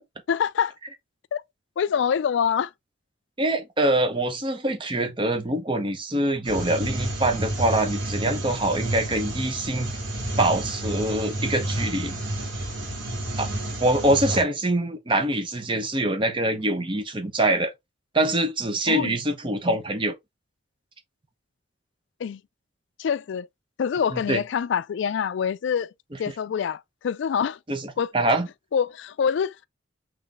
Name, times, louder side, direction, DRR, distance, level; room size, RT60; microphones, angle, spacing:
voice 1, 0.3-0.7 1.3-1.4 1.8-2.7 18.9-19.2 22.2-22.4 23.0-23.5 23.8-25.9 26.2-27.6 28.0-28.1 28.7-29.7, left 7 dB, 65° left, 0.3 m, -25 dB
voice 2, 3.4-9.9 10.4-12.2 13.4-13.5 13.8-17.7 18.1-20.1 24.1-24.4 27.7-27.8 28.1-28.5, right 1 dB, 25° right, 0.8 m, -24 dB
sound 1, 6.4-14.4, right 1 dB, 75° right, 2.0 m, -30 dB
3.9 x 3.2 x 3.6 m
head